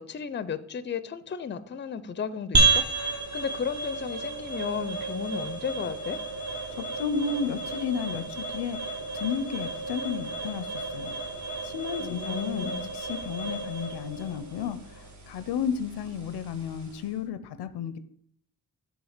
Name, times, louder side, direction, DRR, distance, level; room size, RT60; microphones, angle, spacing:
voice 1, 0.0-2.8 3.3-6.2 12.0-12.9, left 7 dB, 30° left, 14 dB, 0.5 m, -34 dB
sound 1, 2.5-17.2, right 3 dB, 45° right, 1.5 m, -32 dB
voice 2, 6.7-11.1 11.6-18.0, left 6 dB, 85° left, 13 dB, 0.7 m, -33 dB
7.1 x 3.8 x 6.5 m, 0.68 s
cardioid pair, 80°, 39 cm